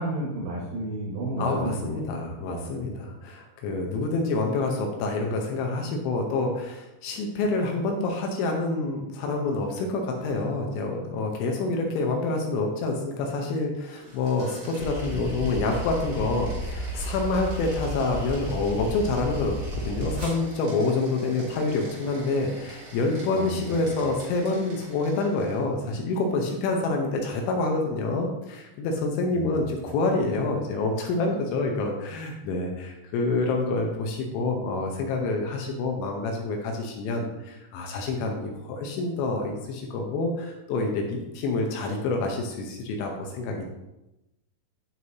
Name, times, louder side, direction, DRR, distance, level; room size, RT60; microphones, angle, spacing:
voice 1, 0.0-2.7 15.1-15.4 23.3-23.9 29.3-29.7, right 1 dB, 85° right, -5 dB, 3.9 m, -33 dB
voice 2, 1.4-19.6 19.8-43.7, left 3 dB, 75° left, 2 dB, 2.9 m, -27 dB
sound 1, 13.9-25.7, right 2 dB, 55° right, 3.1 m, -44 dB
sound 2, 14.8-20.2, equal, 50° left, 2.5 m, -33 dB
11.5 x 4.6 x 2.7 m, 0.95 s
omnidirectional pair, 5.9 m